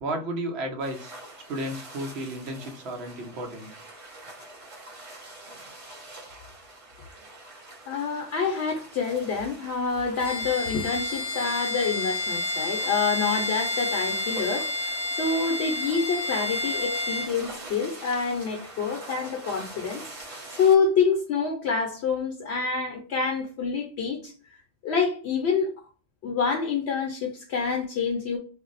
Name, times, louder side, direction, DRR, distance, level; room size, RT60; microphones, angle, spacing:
voice 1, 0.0-1.2 1.5-3.7, right 1 dB, 65° right, 3 dB, 1.0 m, -33 dB
sound 1, 0.8-20.8, right 2 dB, 35° right, 0.7 m, -44 dB
voice 2, 7.9-20.0 20.5-24.3 24.8-25.7 26.2-28.4, left 5 dB, 65° left, 2 dB, 0.8 m, -27 dB
Bowed string instrument, 10.2-17.3, left 2 dB, 15° left, 0.5 m, -30 dB
2.5 x 2.0 x 3.8 m, 0.39 s
omnidirectional pair, 1.2 m